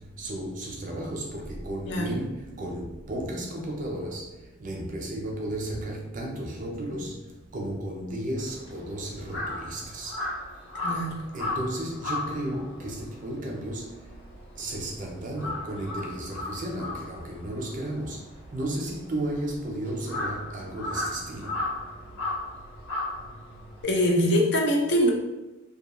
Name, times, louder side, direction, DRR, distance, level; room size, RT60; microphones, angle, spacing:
voice 1, 0.2-4.2 4.6-7.2 7.5-10.1 11.3-13.9 14.6-18.2 18.5-21.5, right 1 dB, 40° right, 0 dB, 0.5 m, -33 dB
voice 2, 1.9-2.2 10.8-11.2 23.8-25.1, equal, 55° left, 1 dB, 0.4 m, -23 dB
Crow, 8.4-14.9 15.2-23.8, left 2 dB, 80° left, 1.1 m, -35 dB
2.5 x 2.3 x 2.9 m, 1.0 s
head